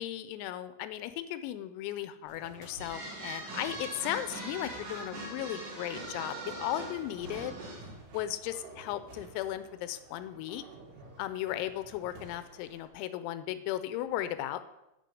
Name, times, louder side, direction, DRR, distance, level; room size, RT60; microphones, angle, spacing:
voice 1, 0.0-7.6 8.1-10.6 11.2-14.6, left 13 dB, 90° left, 12 dB, 3.5 m, -36 dB
sound 1, 2.3-12.9, right 2 dB, 70° right, 5.3 m, -52 dB
sound 2, 2.8-8.0, right 2 dB, 55° right, 5.3 m, -41 dB
11.5 x 6.0 x 8.5 m, 0.93 s
omnidirectional pair, 6.0 m